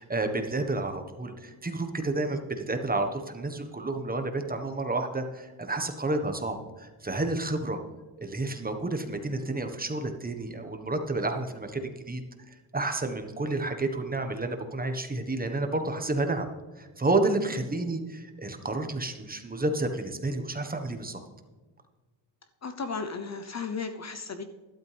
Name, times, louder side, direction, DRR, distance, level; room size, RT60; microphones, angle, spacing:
voice 1, 0.0-7.8 8.2-16.5 16.8-21.2, right 2 dB, 20° right, 6 dB, 1.4 m, -30 dB
voice 2, 22.6-24.4, left 5 dB, 35° left, 8 dB, 0.9 m, -35 dB
12.5 x 12.0 x 3.5 m, 1.3 s
cardioid pair, 90°, 46 cm